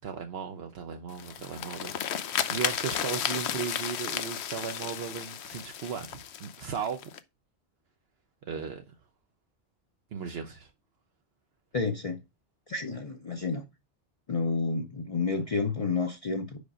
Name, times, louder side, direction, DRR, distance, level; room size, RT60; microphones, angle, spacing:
voice 1, 0.0-7.1 8.5-8.9 10.1-10.7, right 7 dB, 70° right, 0.9 m, -36 dB
sound 1, 1.1-7.2, left 9 dB, 85° left, 0.9 m, -33 dB
voice 2, 11.7-12.2 12.7-13.6 14.3-16.6, left 4 dB, 40° left, 0.7 m, -30 dB
5.1 x 5.1 x 4.9 m
omnidirectional pair, 1.1 m